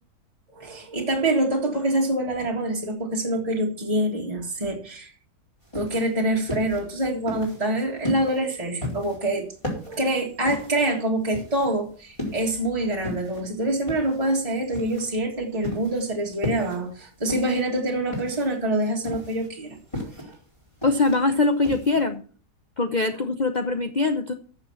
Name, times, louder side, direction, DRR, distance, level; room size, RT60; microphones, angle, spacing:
voice 1, 0.5-5.1 5.7-9.5 9.9-20.3, right 1 dB, 20° right, -2 dB, 2.0 m, -26 dB
sound 1, 5.6-22.0, left 1 dB, 15° left, 4.2 m, -36 dB
voice 2, 20.8-22.2 22.8-24.3, left 3 dB, 35° left, 6 dB, 0.8 m, -22 dB
14.0 x 6.9 x 5.7 m, 0.41 s
omnidirectional pair, 1.8 m